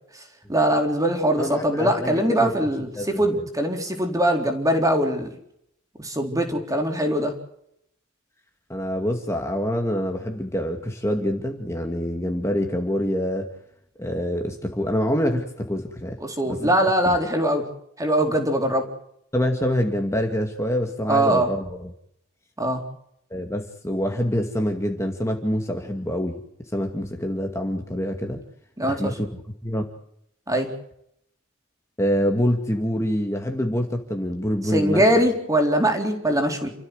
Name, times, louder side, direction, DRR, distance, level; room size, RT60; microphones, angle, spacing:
voice 1, 0.5-5.3 6.0-7.3 16.2-17.7 18.0-18.8 21.1-21.5 22.6-22.8 28.8-29.1 30.5-30.7 34.7-36.7, right 1 dB, 15° right, 4 dB, 4.1 m, -22 dB
voice 2, 1.4-2.5 3.0-3.2 8.7-13.5 14.0-16.2 16.5-16.7 17.1-17.2 19.3-21.9 23.3-26.4 26.7-28.4 28.9-29.8 32.0-35.1, equal, 15° left, 3 dB, 2.2 m, -26 dB
29.0 x 14.5 x 8.1 m, 0.73 s
head